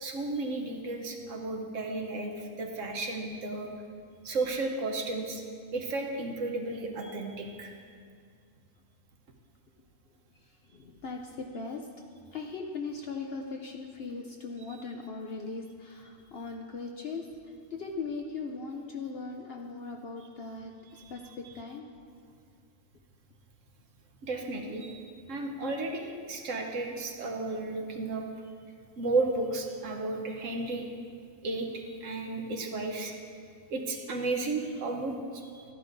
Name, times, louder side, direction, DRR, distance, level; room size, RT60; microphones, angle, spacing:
voice 1, 0.0-3.7 4.2-5.4 5.7-7.7 24.2-25.0 25.3-28.2 29.0-30.9 31.4-33.1 33.7-35.6, right 2 dB, 65° right, 2 dB, 1.2 m, -33 dB
voice 2, 10.7-11.9 12.3-17.3 17.7-21.9, left 4 dB, 60° left, 2 dB, 0.7 m, -39 dB
13.5 x 11.0 x 2.6 m, 2.2 s
omnidirectional pair, 1.5 m